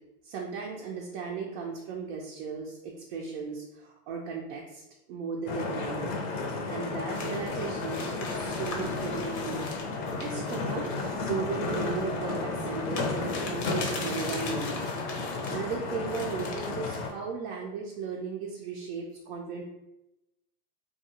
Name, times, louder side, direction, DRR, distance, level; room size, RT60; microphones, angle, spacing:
voice 1, 0.2-4.8 5.1-6.2 6.6-9.7 10.2-14.8 15.1-19.6, right 5 dB, 40° right, -1 dB, 0.4 m, -36 dB
sound 1, 5.5-17.1, left 3 dB, 50° left, 0.6 m, -33 dB
sound 2, 7.1-15.6 16.1-17.1, left 3 dB, 75° left, 0.8 m, -41 dB
2.4 x 2.3 x 2.7 m, 0.94 s
hypercardioid pair, 110°, 50 cm